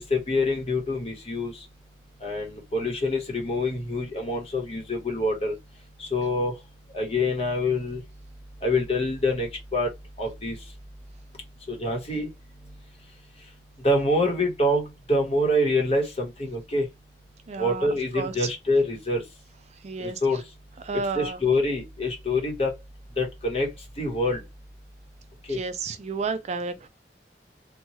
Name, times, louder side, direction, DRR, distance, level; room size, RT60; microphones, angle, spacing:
voice 1, 0.1-1.5 2.2-5.5 6.0-6.5 6.9-8.0 8.6-9.9 10.2-10.6 11.7-12.3 13.8-16.9 17.6-19.2 20.2-20.4 21.1-22.7 23.2-23.7 24.0-24.4 25.5-25.6, left 1 dB, 35° left, 1.0 m, -25 dB
voice 2, 17.5-17.9 18.1-18.5 19.8-20.2 20.8-21.4 25.5-26.9, right 4 dB, 40° right, 0.3 m, -31 dB
2.8 x 2.2 x 3.0 m
head